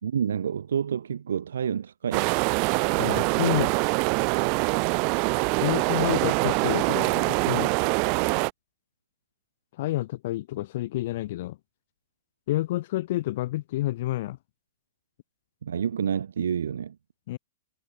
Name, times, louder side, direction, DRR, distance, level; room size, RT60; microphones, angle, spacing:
voice 1, 0.0-2.3 15.6-17.0, right 8 dB, 85° right, 3.1 m, -28 dB
sound 1, 2.1-8.5, right 38 dB, 25° right, 0.7 m, -24 dB
voice 2, 3.0-3.7 5.6-7.7 9.8-11.6 12.5-14.4 17.3-17.4, left 16 dB, 40° left, 0.5 m, -29 dB
hypercardioid pair, 175°, 0 cm